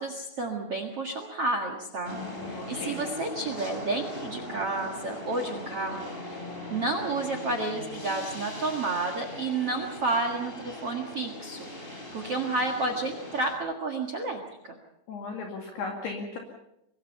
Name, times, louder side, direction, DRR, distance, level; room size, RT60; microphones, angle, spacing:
voice 1, 0.0-2.2 2.4-6.4 6.7-14.7, right 3 dB, 80° right, 6 dB, 1.3 m, -31 dB
sound 1, 2.0-13.5, left 1 dB, 15° left, 2.8 m, -39 dB
voice 2, 2.1-3.0 15.1-16.4, left 4 dB, 60° left, 1 dB, 4.0 m, -37 dB
25.0 x 21.5 x 5.6 m, 0.83 s
omnidirectional pair, 5.7 m